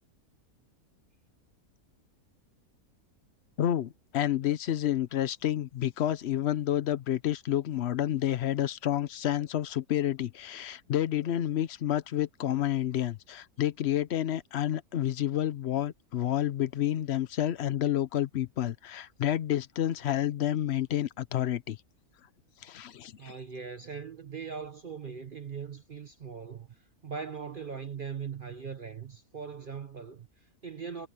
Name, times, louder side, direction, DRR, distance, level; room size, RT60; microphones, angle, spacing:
voice 1, 3.6-21.8 22.6-23.3, left 11 dB, 55° left, 0.8 m, -29 dB
voice 2, 23.2-31.1, right 6 dB, 45° right, 0.8 m, -40 dB
omnidirectional pair, 1.6 m